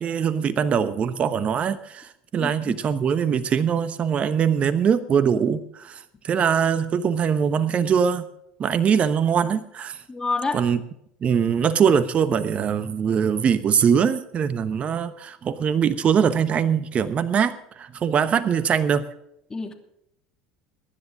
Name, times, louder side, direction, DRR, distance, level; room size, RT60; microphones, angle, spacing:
voice 1, 0.0-8.3 8.6-10.0 10.5-10.8 11.2-19.0, right 7 dB, 40° right, 13 dB, 1.0 m, -22 dB
voice 2, 2.4-2.8 10.1-10.6 19.5-19.7, left 4 dB, 20° left, 5 dB, 2.7 m, -28 dB
23.0 x 10.5 x 3.7 m, 0.77 s
hypercardioid pair, 85°, 3 cm